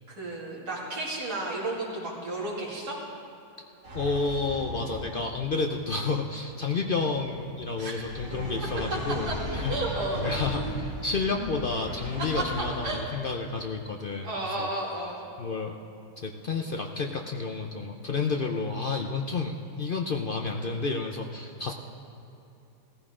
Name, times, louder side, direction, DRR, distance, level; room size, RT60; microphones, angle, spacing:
voice 1, 0.1-3.0 7.8-7.9 9.2-9.3 9.7-10.3 12.2-12.5 12.8-13.0 14.2-15.2, right 2 dB, 75° right, -7 dB, 3.2 m, -32 dB
sound 1, 3.8-12.9, equal, 50° right, 3.4 m, -37 dB
voice 2, 3.9-9.8 10.2-14.7 15.4-15.8 16.2-21.7, left 4 dB, 55° left, 3 dB, 0.6 m, -30 dB
17.0 x 14.5 x 3.7 m, 2.9 s
omnidirectional pair, 1.7 m